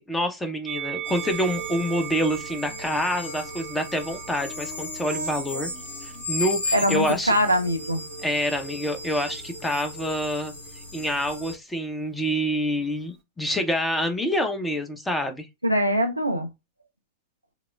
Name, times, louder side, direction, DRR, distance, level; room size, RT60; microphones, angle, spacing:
voice 1, 0.0-5.7 6.0-7.3 8.2-10.5 10.9-15.5, equal, 10° left, 0.8 m, -27 dB
Musical instrument, 0.6-7.1 7.9-8.9, right 13 dB, 40° right, 0.4 m, -39 dB
sound 1, 1.0-11.6, left 2 dB, 65° left, 1.3 m, -36 dB
voice 2, 6.7-8.0 15.6-16.5, equal, 85° right, 0.6 m, -22 dB
5.8 x 2.1 x 2.3 m
figure-of-eight pair, 90°, 0 cm